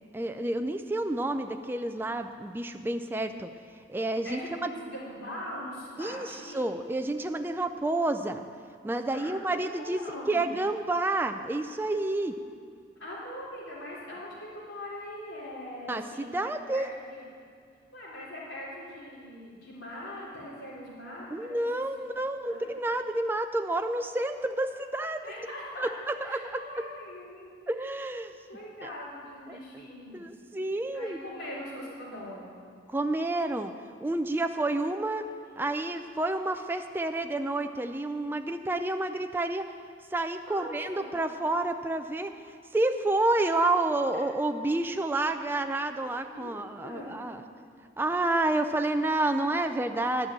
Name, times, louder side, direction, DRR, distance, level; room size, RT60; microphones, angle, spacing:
voice 1, 0.1-3.5 3.9-4.7 6.0-8.4 8.8-10.0 10.3-12.4 15.9-16.9 21.3-25.2 25.8-26.4 27.7-28.3 28.8-28.9 29.5-29.9 30.1-31.2 32.9-33.7 34.0-35.3 35.6-39.7 40.1-47.4 48.0-50.3, right 2 dB, 10° right, 7 dB, 0.3 m, -29 dB
voice 2, 4.2-6.7 9.1-10.5 13.0-16.4 16.7-17.2 17.9-21.7 22.4-22.7 25.2-25.9 26.2-27.5 28.5-30.2 30.9-32.6 40.5-41.1 44.1-44.2 46.3-47.3, left 1 dB, 75° left, -7 dB, 3.7 m, -41 dB
11.5 x 6.1 x 8.7 m, 2.2 s
head